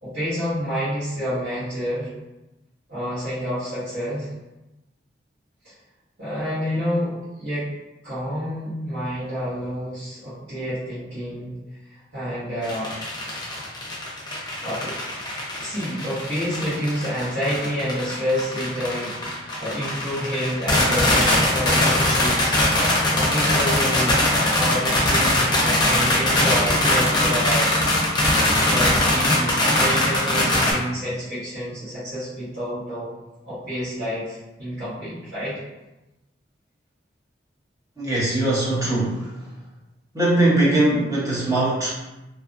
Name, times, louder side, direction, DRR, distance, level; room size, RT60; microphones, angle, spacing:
voice 1, 0.0-2.1 2.9-4.3 6.2-7.7 8.0-11.5 11.9-12.9 14.3-15.0 15.6-22.6 23.1-24.2 24.5-27.7 28.6-33.1 33.4-35.6, equal, 65° right, -15 dB, 1.3 m, -28 dB
sound 1, 12.6-30.7, left 1 dB, 25° left, 0.6 m, -21 dB
voice 2, 38.0-39.3 40.1-41.9, right 1 dB, 20° right, -8 dB, 0.8 m, -21 dB
2.6 x 2.3 x 2.6 m, 1.0 s
head